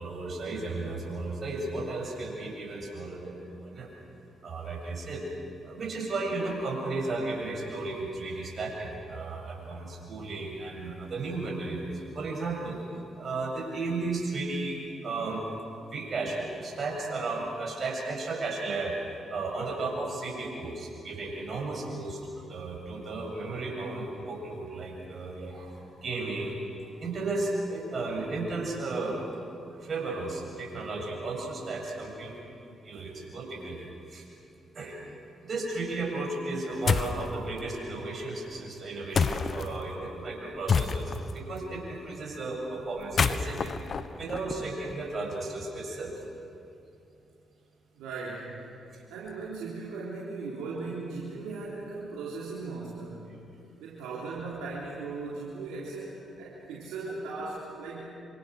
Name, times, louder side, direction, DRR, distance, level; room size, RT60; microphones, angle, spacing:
voice 1, 0.0-3.9 4.4-5.2 5.6-12.8 13.2-15.4 15.9-19.0 19.3-25.7 26.0-26.6 27.0-29.4 29.8-32.3 32.8-34.3 34.7-35.0 35.5-43.7 44.2-46.2 57.1-57.2, right 3 dB, 55° right, 0 dB, 7.5 m, -34 dB
sound 1, 36.9-37.2 39.1-39.7 40.7-41.3 43.0-44.9, left 5 dB, 55° left, 1.1 m, -27 dB
voice 2, 48.0-48.7 49.1-53.3 53.8-58.0, right 3 dB, 80° right, -6 dB, 3.7 m, -38 dB
26.5 x 26.5 x 6.5 m, 2.6 s
hypercardioid pair, 50°, 0 cm